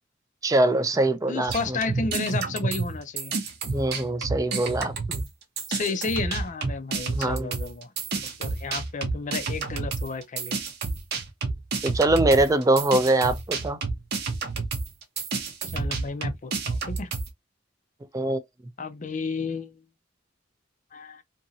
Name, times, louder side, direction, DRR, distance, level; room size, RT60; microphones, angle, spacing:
voice 1, 0.4-1.8 3.7-5.3 7.1-7.6 11.8-13.8 18.1-18.4, right 2 dB, 15° right, 0.4 m, -23 dB
voice 2, 1.3-3.4 5.7-7.9 8.4-10.6 15.7-17.1 18.8-19.8 20.9-21.2, left 4 dB, 40° left, 0.5 m, -32 dB
sound 1, 1.5-5.3 5.6-17.3, right 4 dB, 55° right, 0.7 m, -30 dB
2.8 x 2.7 x 2.6 m
head